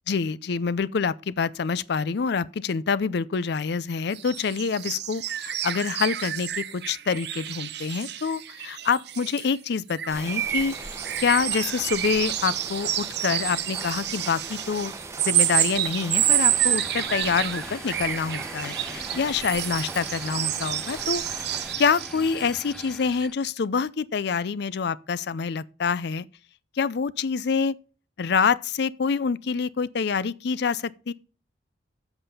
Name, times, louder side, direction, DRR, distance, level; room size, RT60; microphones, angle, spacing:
voice 1, 0.1-10.9 11.2-26.3 26.8-27.8 28.2-31.1, left 5 dB, 65° left, 0.5 m, -26 dB
sound 1, 4.1-9.6 9.9-22.5 22.8-22.9 23.2-23.3, right 13 dB, 65° right, 0.8 m, -29 dB
sound 2, 10.1-21.8, right 2 dB, 15° right, 1.0 m, -40 dB
sound 3, 16.1-23.3, left 1 dB, 5° left, 0.4 m, -43 dB
7.9 x 6.9 x 5.5 m
head